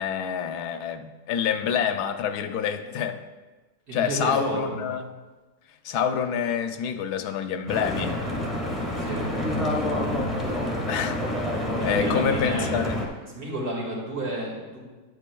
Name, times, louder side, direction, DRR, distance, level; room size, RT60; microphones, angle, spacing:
voice 1, 0.0-3.2 3.9-5.1 5.8-8.2 9.5-9.6 10.9-11.2 11.8-13.0, left 7 dB, 85° left, 8 dB, 1.1 m, -27 dB
voice 2, 3.9-4.7 8.9-9.2 11.8-12.9 13.2-14.8, right 1 dB, 70° right, -3 dB, 2.5 m, -31 dB
Stream / Boat Water vehicle, 7.7-13.1, left 1 dB, ahead, 1.1 m, -28 dB
9.6 x 8.1 x 2.3 m, 1.3 s
omnidirectional pair, 1.7 m